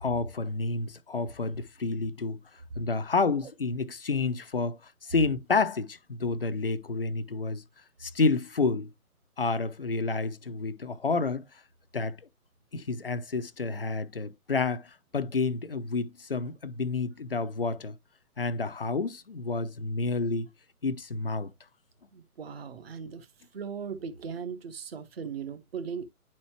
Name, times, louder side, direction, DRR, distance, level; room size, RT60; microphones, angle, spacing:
voice 1, 0.0-2.4 2.8-7.6 8.0-8.9 9.4-11.4 11.9-12.2 12.7-18.0 18.4-20.5 20.8-21.5, left 4 dB, 40° left, 0.4 m, -29 dB
voice 2, 22.1-23.3 23.5-26.0, right 6 dB, 40° right, 1.0 m, -38 dB
10.0 x 4.3 x 2.8 m
figure-of-eight pair, 140°, 46 cm